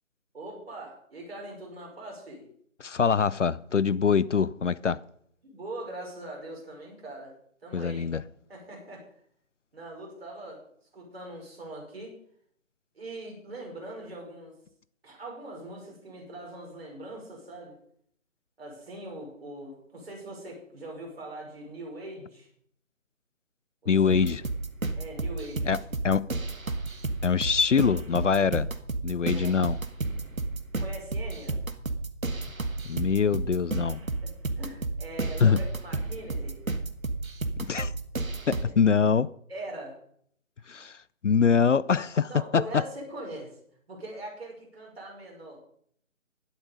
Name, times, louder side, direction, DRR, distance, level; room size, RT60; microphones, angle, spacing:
voice 1, 0.3-2.5 5.4-8.1 8.5-9.1 9.7-10.6 10.9-12.2 12.9-14.6 15.0-17.8 18.6-22.5 23.8-24.2 24.9-25.9 29.3-29.5 30.8-31.6 34.0-36.6 38.5-38.7 39.5-40.0 42.3-43.6 43.9-45.6, right 1 dB, 50° right, 5.5 m, -42 dB
voice 2, 2.8-5.0 7.7-8.2 23.9-24.4 25.6-26.3 27.2-28.7 29.0-29.8 32.8-34.0 35.4-35.6 37.6-37.9 38.5-39.3 40.7-41.0 41.2-42.6, left 6 dB, 65° left, 0.5 m, -24 dB
sound 1, 24.1-38.6, right 3 dB, 90° right, 1.5 m, -32 dB
11.5 x 11.5 x 5.2 m
figure-of-eight pair, 155°, 40 cm